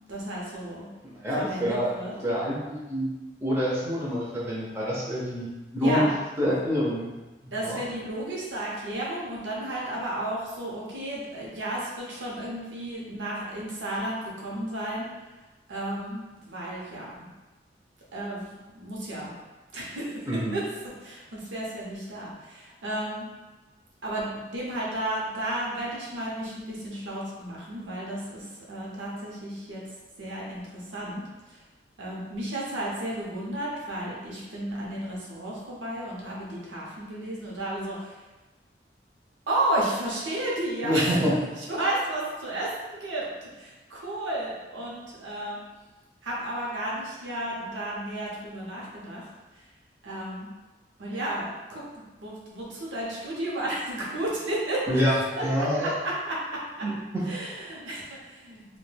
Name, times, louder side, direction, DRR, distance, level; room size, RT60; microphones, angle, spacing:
voice 1, 0.0-0.8 1.4-2.1 5.8-6.1 7.5-15.1 15.7-17.3 18.1-19.3 19.7-20.3 20.5-20.6 21.0-23.3 24.0-29.8 30.2-31.2 31.5-31.6 32.0-38.2 39.5-41.2 41.6-45.6 46.2-49.3 50.0-50.5 51.0-51.8 52.2-55.0 55.3-56.4 56.8-56.9 57.3-58.8, right 1 dB, 85° right, -5 dB, 0.6 m, -33 dB
voice 2, 1.0-1.9 2.2-3.1 3.4-6.1 6.4-7.1 7.4-7.8 20.3-20.6 40.8-41.3 54.9-55.9 56.8-57.2, equal, 15° right, -7 dB, 0.4 m, -27 dB
2.2 x 2.1 x 3.2 m, 1.1 s
head